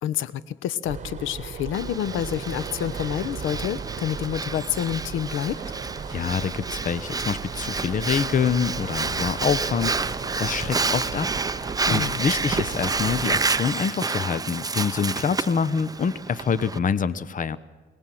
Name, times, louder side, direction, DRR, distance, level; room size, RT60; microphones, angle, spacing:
voice 1, 0.0-5.6 11.9-12.2, left 10 dB, 85° left, 17 dB, 0.9 m, -28 dB
sound 1, 0.8-13.6, right 6 dB, 35° right, 2.2 m, -36 dB
Breathing, 1.7-16.8, right 4 dB, 20° right, 0.7 m, -29 dB
voice 2, 6.1-11.3 11.5-17.6, left 6 dB, 40° left, 16 dB, 0.9 m, -26 dB
24.0 x 19.0 x 7.6 m, 1.3 s
cardioid pair, 90°, 20 cm